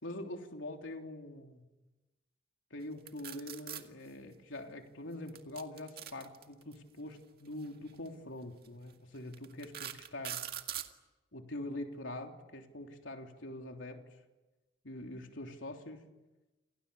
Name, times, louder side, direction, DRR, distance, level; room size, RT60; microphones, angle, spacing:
voice 1, 0.0-1.6 2.7-10.4 11.3-14.0 14.8-16.0, left 1 dB, 85° left, 3 dB, 3.4 m, -44 dB
sound 1, 3.1-3.8 5.3-6.7 7.9-8.1 8.6-8.7 9.3-10.9, right 11 dB, 50° right, 2.0 m, -41 dB
29.5 x 28.5 x 7.0 m, 1.1 s
head